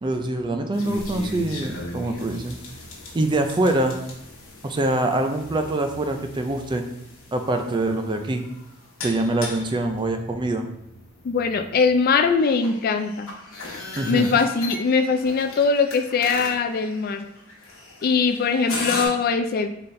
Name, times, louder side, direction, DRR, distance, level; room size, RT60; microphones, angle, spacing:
voice 1, 0.0-2.6 3.1-4.0 4.6-6.8 7.3-8.4 9.0-10.7 14.0-14.3, right 2 dB, 25° right, 5 dB, 0.4 m, -24 dB
sound 1, 0.7-19.1, left 2 dB, 90° left, 1.1 m, -37 dB
voice 2, 11.2-13.3 14.1-17.2 18.0-19.7, left 5 dB, 45° left, 7 dB, 0.4 m, -21 dB
4.0 x 3.8 x 3.2 m, 0.81 s
head